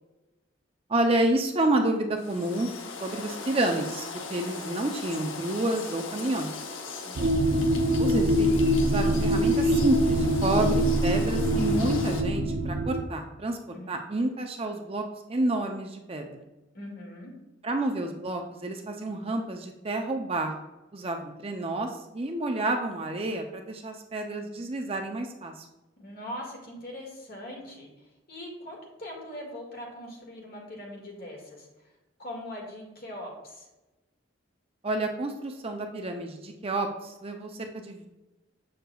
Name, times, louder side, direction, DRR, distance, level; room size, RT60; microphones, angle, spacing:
voice 1, 0.9-2.7 3.0-4.0 4.3-6.5 8.0-15.0 15.3-16.4 17.6-20.6 20.9-25.7 34.8-38.1, right 2 dB, 30° right, 4 dB, 0.5 m, -29 dB
sound 1, 2.2-12.2, left 4 dB, 80° left, 0.8 m, -39 dB
voice 2, 7.0-7.6 13.7-13.9 16.7-17.3 26.0-27.9 28.3-31.7 32.2-33.7, left 1 dB, 50° left, 0 dB, 1.8 m, -41 dB
sound 2, 7.2-13.0, equal, 85° right, 0.6 m, -24 dB
7.8 x 6.5 x 2.3 m, 1.0 s
head